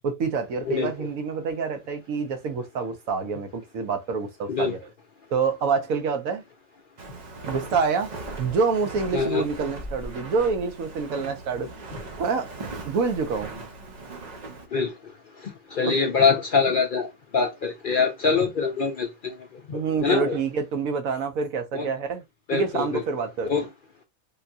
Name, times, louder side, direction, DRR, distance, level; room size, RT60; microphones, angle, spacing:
voice 1, 0.0-4.9 5.3-6.4 7.4-8.1 8.4-11.9 12.2-12.5 12.8-13.6 15.8-16.0 19.7-22.2 22.5-23.5, right 5 dB, 70° right, 1.2 m, -27 dB
voice 2, 0.7-1.1 4.5-4.7 9.1-9.5 14.7-14.9 15.4-19.3 19.7-20.4 21.7-21.9 22.5-23.0 23.4-23.7, left 5 dB, 60° left, 0.5 m, -24 dB
Walk footsteps, 7.0-14.7, right 2 dB, 45° right, 0.5 m, -39 dB
3.7 x 2.7 x 2.3 m
omnidirectional pair, 1.5 m